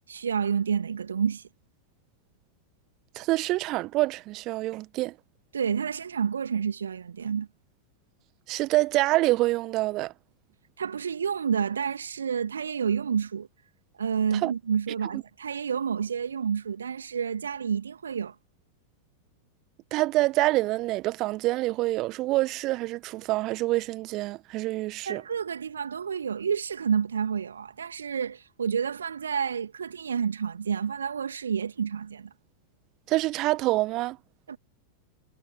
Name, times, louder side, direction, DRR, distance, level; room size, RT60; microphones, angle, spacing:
voice 1, 0.1-1.5 5.5-7.5 10.8-13.5 13.9-18.4 25.1-32.3 34.5-34.6, right 7 dB, 70° right, 2.3 m, -29 dB
voice 2, 3.1-5.1 8.5-10.1 14.4-14.5 19.9-25.2 33.1-34.2, right 19 dB, 40° right, 1.4 m, -26 dB
figure-of-eight pair, 90°, 0 cm